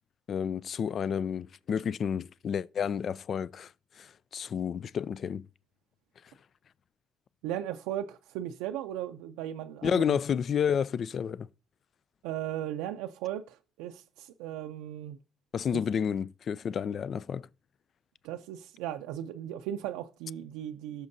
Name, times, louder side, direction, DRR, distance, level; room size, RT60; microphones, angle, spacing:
voice 1, 0.3-3.7 4.0-5.5 9.8-11.5 15.5-17.5, left 7 dB, 60° left, 0.4 m, -30 dB
voice 2, 7.4-10.2 12.2-15.2 15.7-15.8 18.2-21.1, right 11 dB, 85° right, 0.4 m, -37 dB
16.5 x 6.3 x 2.7 m
supercardioid pair, 60°, 0 cm